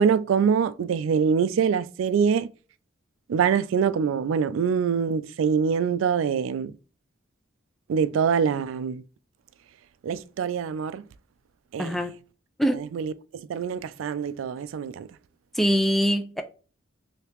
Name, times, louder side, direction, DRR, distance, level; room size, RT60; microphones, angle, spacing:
voice 1, 0.0-2.5 3.3-6.8 7.9-9.0 10.0-11.0 11.7-12.0 12.7-15.2, right 6 dB, 90° right, 0.3 m, -24 dB
voice 2, 11.8-12.1 12.6-12.8 15.5-16.4, equal, ahead, 0.3 m, -23 dB
3.0 x 2.8 x 3.3 m
head